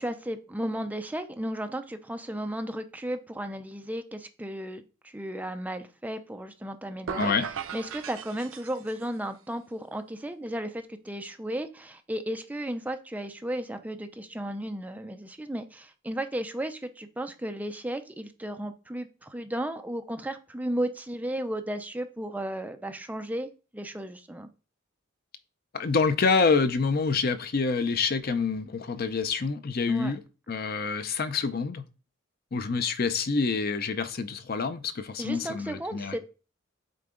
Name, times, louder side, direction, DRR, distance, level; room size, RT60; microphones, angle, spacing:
voice 1, 0.0-7.3 7.7-24.5 29.9-30.1 35.2-36.2, right 1 dB, 10° right, 0.4 m, -34 dB
sound 1, 7.1-9.2, right 7 dB, 75° right, 0.5 m, -37 dB
voice 2, 7.2-7.5 25.7-30.2 30.5-31.8 32.5-36.2, left 4 dB, 45° left, 0.5 m, -27 dB
7.6 x 3.9 x 3.7 m
head